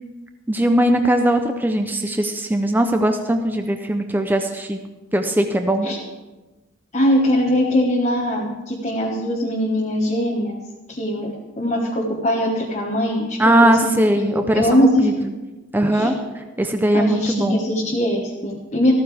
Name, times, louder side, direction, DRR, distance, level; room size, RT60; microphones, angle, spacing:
voice 1, 0.5-4.8 5.1-5.9 13.4-14.7 15.0-15.1 15.7-16.2 16.6-17.6, right 1 dB, 10° right, 5 dB, 0.6 m, -19 dB
voice 2, 6.9-10.6 10.9-15.1 15.9-16.1 16.9-18.9, equal, 35° left, -3 dB, 1.4 m, -21 dB
14.5 x 14.0 x 3.5 m, 1.2 s
head